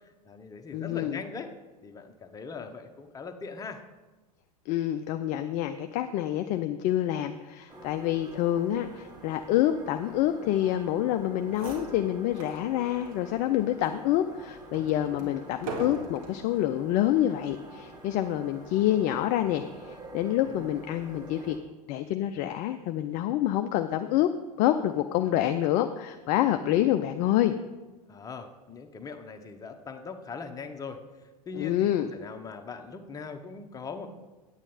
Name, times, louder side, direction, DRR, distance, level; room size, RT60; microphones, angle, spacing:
voice 1, 0.0-1.5 1.8-3.8 15.2-15.4 20.5-20.7 25.1-25.5 26.6-26.8 28.1-31.0 31.5-34.1, left 5 dB, 15° left, 6 dB, 0.9 m, -41 dB
voice 2, 0.7-1.2 4.7-21.6 21.9-24.3 24.6-27.6 31.5-32.1, left 12 dB, 35° left, 8 dB, 0.4 m, -27 dB
sound 1, 7.7-21.6, right 2 dB, 20° right, 1.4 m, -47 dB
sound 2, 11.2-11.3 11.5-12.6 13.1-13.2 13.8-16.4 17.2-17.5, right 3 dB, 60° right, 2.0 m, -40 dB
8.8 x 8.7 x 4.3 m, 1.2 s
figure-of-eight pair, 85°, 21 cm